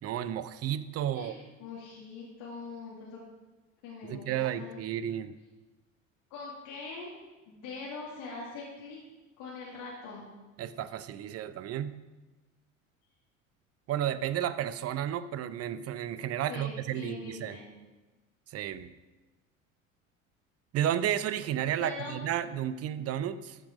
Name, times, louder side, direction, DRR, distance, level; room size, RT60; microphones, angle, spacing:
voice 1, 0.0-1.4 4.0-5.4 10.6-12.0 13.9-17.6 18.5-18.9 20.7-23.6, right 10 dB, 35° right, 14 dB, 0.7 m, -32 dB
voice 2, 1.1-3.2 3.8-4.8 6.3-7.1 7.5-9.0 9.4-10.3 16.5-17.6 21.8-22.3, left 4 dB, 55° left, -4 dB, 2.5 m, -42 dB
13.0 x 6.0 x 5.2 m, 1.2 s
hypercardioid pair, 70°, 40 cm